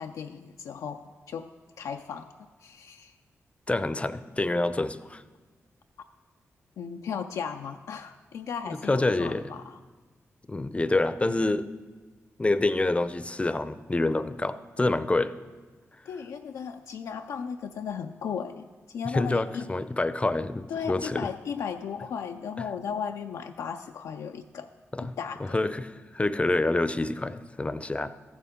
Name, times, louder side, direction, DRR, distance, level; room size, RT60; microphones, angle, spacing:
voice 1, 0.0-1.5 1.8-2.3 2.6-3.1 6.8-9.8 16.1-19.7 20.7-24.7 25.0-25.6, left 7 dB, 90° left, 5 dB, 0.3 m, -36 dB
voice 2, 3.7-5.2 8.7-9.5 10.5-11.7 12.4-15.3 19.1-21.3 24.9-25.1 25.5-28.1, left 2 dB, 20° left, 14 dB, 0.5 m, -27 dB
14.0 x 6.9 x 3.7 m, 1.3 s
cardioid pair, 50°, 5 cm